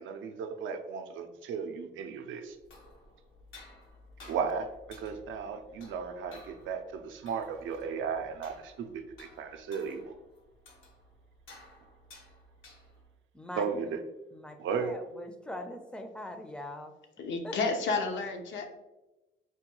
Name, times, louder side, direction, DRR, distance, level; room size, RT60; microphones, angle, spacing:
voice 1, 0.0-2.6 4.3-4.7 5.0-10.1 13.6-14.0 14.6-15.0, right 6 dB, 75° right, 6 dB, 0.5 m, -35 dB
sound 1, 2.5-13.2, left 2 dB, 85° left, 1.0 m, -55 dB
voice 2, 13.3-14.0 14.3-16.9 17.4-17.5, left 1 dB, 5° left, 6 dB, 0.4 m, -42 dB
voice 3, 17.2-18.7, left 4 dB, 70° left, 5 dB, 0.6 m, -31 dB
4.5 x 2.3 x 2.9 m, 1.0 s
cardioid pair, 90°, 20 cm